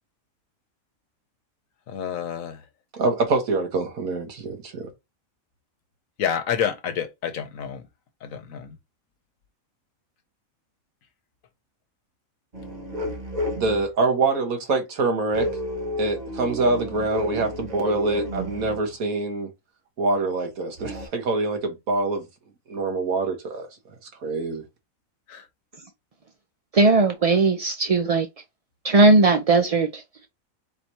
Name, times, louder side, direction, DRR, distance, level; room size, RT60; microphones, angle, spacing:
voice 1, 1.9-2.6 6.2-7.9 8.2-8.8 25.3-25.5, left 8 dB, 70° left, 1.2 m, -29 dB
voice 2, 2.9-4.9 13.6-15.5 16.0-19.5 20.0-22.2 22.7-23.7 24.2-24.6, right 3 dB, 85° right, 1.8 m, -25 dB
sound 1, 12.5-13.9 15.3-18.9 20.8-21.1, equal, 35° right, 1.1 m, -32 dB
voice 3, 26.7-28.3 28.8-30.3, right 3 dB, 55° right, 0.4 m, -18 dB
4.1 x 2.7 x 4.5 m
omnidirectional pair, 1.4 m